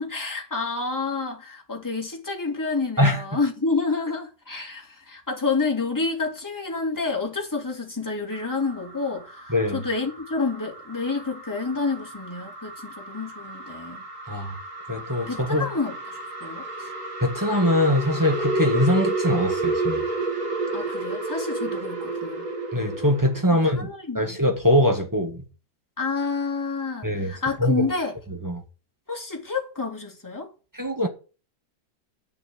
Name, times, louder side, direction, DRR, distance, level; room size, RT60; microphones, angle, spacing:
voice 1, 0.0-14.0 15.3-16.7 20.7-22.5 23.6-24.4 26.0-28.1 29.1-30.5, left 4 dB, 10° left, 2.4 m, -29 dB
sound 1, 8.3-23.5, right 2 dB, 40° right, 2.3 m, -31 dB
voice 2, 9.5-9.8 14.3-14.5 14.9-15.7 17.2-20.0 22.7-23.9 24.2-25.4 27.0-27.3 27.6-27.9 28.4-28.6 30.7-31.1, left 1 dB, 10° right, 1.8 m, -22 dB
10.5 x 6.9 x 7.7 m
omnidirectional pair, 2.2 m